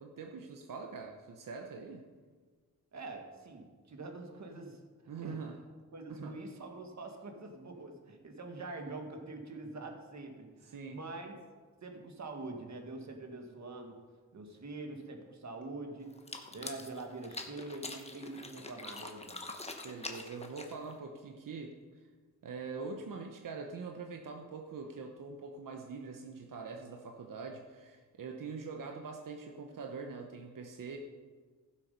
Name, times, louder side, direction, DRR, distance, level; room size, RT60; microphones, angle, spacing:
voice 1, 0.0-2.0 5.1-5.6 6.1-6.3 10.7-11.0 19.8-21.7 22.4-31.0, right 4 dB, 90° right, 2 dB, 1.1 m, -43 dB
voice 2, 2.9-4.8 5.2-5.4 5.9-11.3 11.8-14.0 14.3-16.2 16.5-19.4, right 2 dB, 60° right, 4 dB, 1.7 m, -45 dB
sound 1, 16.1-21.0, left 2 dB, 20° left, 1.0 m, -45 dB
15.5 x 7.4 x 5.3 m, 1.5 s
wide cardioid pair, 155°, 32 cm